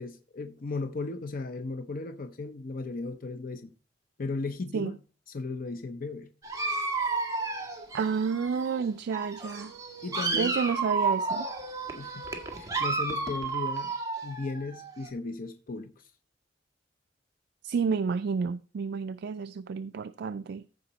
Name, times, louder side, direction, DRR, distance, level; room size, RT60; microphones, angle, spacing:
voice 1, 0.0-3.7 4.2-4.9 5.3-6.3 10.0-10.6 11.9-13.9 14.2-16.1, left 3 dB, 50° left, 0.6 m, -36 dB
Dog, 6.4-8.8 9.1-15.1, right 3 dB, 20° right, 1.6 m, -32 dB
voice 2, 7.9-9.7 10.3-11.5 17.6-20.6, right 5 dB, 60° right, 0.4 m, -30 dB
14.5 x 5.1 x 4.0 m
head